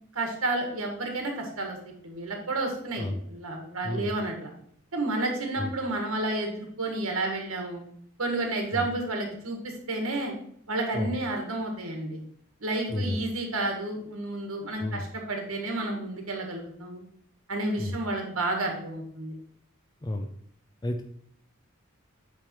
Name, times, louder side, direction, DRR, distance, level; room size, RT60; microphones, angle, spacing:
voice 1, 0.1-4.5 4.9-7.8 8.2-10.3 10.7-12.2 12.6-17.0 17.5-19.3, right 2 dB, 80° right, 2 dB, 1.6 m, -31 dB
voice 2, 12.9-13.2 14.8-15.1 17.8-18.0 20.0-20.3 20.8-21.0, left 1 dB, 20° left, 4 dB, 0.4 m, -31 dB
8.8 x 3.4 x 4.5 m, 0.66 s
head